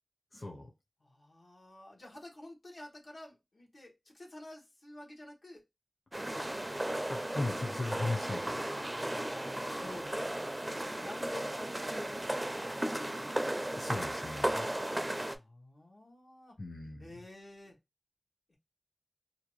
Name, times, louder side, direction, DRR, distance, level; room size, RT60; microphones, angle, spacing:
voice 1, 0.3-0.7 7.1-8.5 13.4-14.7 16.6-17.1, left 2 dB, 45° left, 0.7 m, -38 dB
voice 2, 1.0-5.6 8.9-10.3 10.8-13.3 15.3-16.6 17.0-17.8 18.5-18.6, left 1 dB, 80° left, 1.0 m, -50 dB
sound 1, 6.1-15.4, right 1 dB, 25° right, 0.4 m, -35 dB
2.7 x 2.2 x 2.9 m
wide cardioid pair, 70°, 0 cm